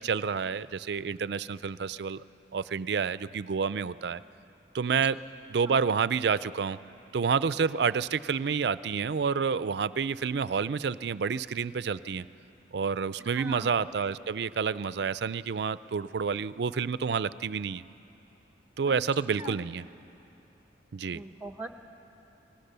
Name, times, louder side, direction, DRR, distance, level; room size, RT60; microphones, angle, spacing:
voice 1, 0.0-2.2 2.5-4.2 4.7-5.2 5.5-6.8 7.1-12.2 12.7-17.8 18.8-19.8 20.9-21.2, right 6 dB, 60° right, 16 dB, 0.4 m, -29 dB
voice 2, 13.3-13.8 19.4-19.6 21.1-21.7, right 2 dB, 10° right, 7 dB, 0.8 m, -40 dB
26.5 x 19.5 x 6.8 m, 2.8 s
head